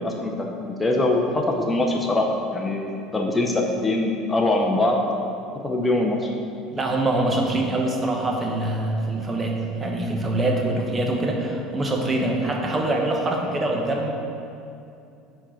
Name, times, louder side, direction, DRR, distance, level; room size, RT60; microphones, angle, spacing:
voice 1, 0.0-2.3 2.5-2.8 3.1-5.3 5.6-6.3, left 2 dB, 15° left, 0 dB, 0.7 m, -23 dB
voice 2, 6.7-14.1, right 2 dB, 25° right, 1 dB, 1.0 m, -24 dB
4.5 x 4.5 x 5.8 m, 2.6 s
supercardioid pair, 95°, 0 cm